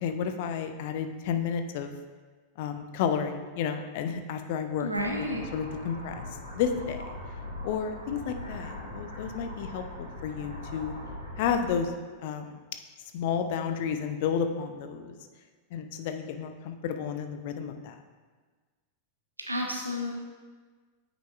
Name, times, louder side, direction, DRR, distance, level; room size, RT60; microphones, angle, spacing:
voice 1, 0.0-1.9 2.6-4.9 5.2-5.3 5.5-6.3 6.5-7.0 7.6-10.9 11.4-11.9 12.2-12.6 13.1-15.1 15.7-17.9, left 7 dB, 50° left, 7 dB, 0.5 m, -31 dB
voice 2, 4.8-5.4 19.5-20.1, left 1 dB, 85° right, 0 dB, 0.9 m, -30 dB
sound 1, 4.9-11.8, left 1 dB, 90° left, 1.6 m, -41 dB
8.9 x 5.0 x 2.5 m, 1.4 s
figure-of-eight pair, 90°, 0 cm